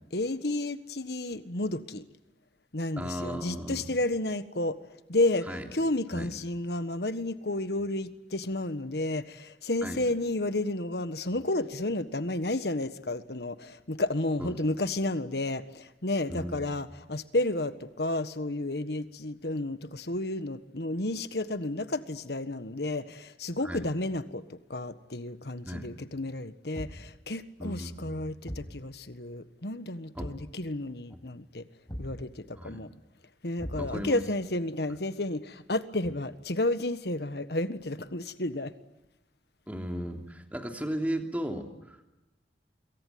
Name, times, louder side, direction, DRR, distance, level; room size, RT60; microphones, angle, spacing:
voice 1, 0.1-2.0 2.7-4.8 5.1-31.7 32.0-32.9 33.4-38.7, left 2 dB, 70° left, 12 dB, 1.5 m, -31 dB
voice 2, 3.0-3.9 5.5-5.6 6.1-6.3 9.8-10.0 14.4-14.5 16.3-16.7 23.6-23.9 25.7-25.9 27.6-28.3 30.2-30.3 32.6-32.8 33.8-34.2 39.7-42.0, equal, 10° right, 3 dB, 3.1 m, -36 dB
Thump thud, 26.7-27.2 28.5-28.8 30.2-30.5 31.9-32.2 33.6-34.2, equal, 20° left, 5.9 m, -39 dB
26.0 x 23.5 x 9.4 m, 0.98 s
head